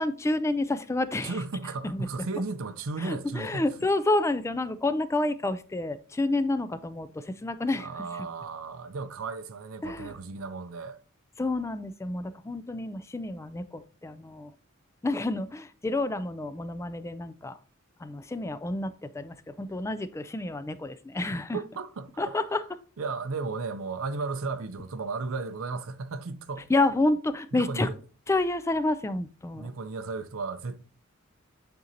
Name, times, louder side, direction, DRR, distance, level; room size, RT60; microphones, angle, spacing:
voice 1, 0.0-1.3 1.8-2.3 3.0-7.9 8.2-8.3 9.8-10.1 11.4-14.5 15.0-17.6 18.0-21.6 22.2-22.6 26.7-27.9 28.3-29.7, left 2 dB, 15° left, 0.3 m, -29 dB
voice 2, 1.2-3.9 7.8-11.0 21.5-22.4 23.0-26.7 27.5-28.0 29.6-30.8, right 4 dB, 85° right, 0.6 m, -35 dB
9.2 x 3.9 x 2.8 m
head